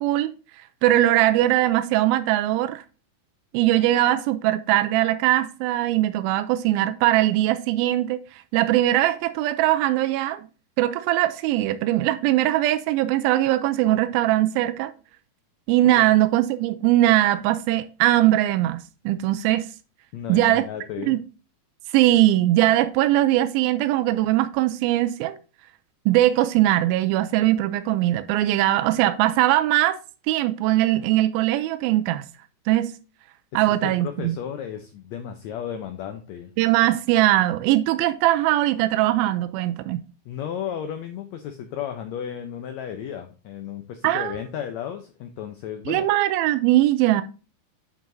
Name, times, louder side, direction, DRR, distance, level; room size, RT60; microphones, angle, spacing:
voice 1, 0.0-2.8 3.5-10.5 10.8-14.9 15.7-18.8 19.1-19.7 20.3-20.7 21.1-21.2 21.9-25.4 26.1-30.0 30.3-32.3 32.7-32.9 33.5-34.4 36.6-40.0 44.0-44.4 45.9-47.2, right 14 dB, 90° right, 2.4 m, -21 dB
voice 2, 20.1-21.1 33.5-36.5 40.2-46.1, left 9 dB, 85° left, 1.5 m, -34 dB
10.5 x 4.7 x 2.6 m
omnidirectional pair, 4.1 m